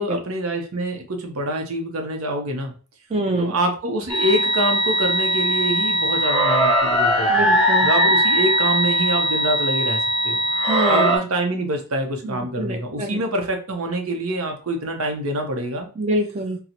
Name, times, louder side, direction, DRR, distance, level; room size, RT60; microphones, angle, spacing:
voice 1, 0.0-2.7 3.4-7.3 7.8-10.4 10.9-15.9, right 1 dB, 80° right, 4 dB, 0.7 m, -25 dB
voice 2, 3.1-3.5 7.3-7.9 10.6-11.1 12.2-13.2 16.0-16.6, right 1 dB, 30° right, 5 dB, 0.4 m, -25 dB
sound 1, 4.1-11.2, equal, 5° left, 0.8 m, -20 dB
3.8 x 2.0 x 2.8 m, 0.37 s
head